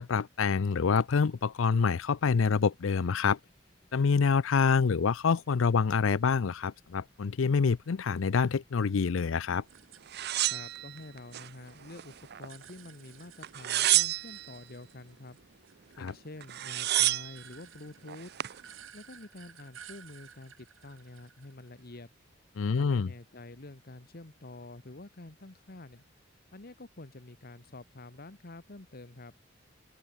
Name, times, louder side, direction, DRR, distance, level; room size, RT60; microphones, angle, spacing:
voice 1, 0.0-3.4 3.9-9.6 16.0-16.1 22.6-23.1, left 5 dB, 75° left, 0.5 m, -26 dB
sound 1, 0.9-12.5, left 1 dB, 20° left, 7.9 m, -69 dB
sound 2, 9.7-11.7 12.0-15.4 15.6-22.0, right 9 dB, 80° right, 2.7 m, -55 dB
sound 3, 10.1-11.5 11.9-12.7 13.4-14.5 16.1-16.2 16.4-17.4 18.1-18.6, right 15 dB, 55° right, 0.6 m, -29 dB
voice 2, 10.4-15.4 16.0-18.3 18.9-22.1 22.7-26.0 26.5-29.3, left 2 dB, 50° left, 1.5 m, -48 dB
open air
head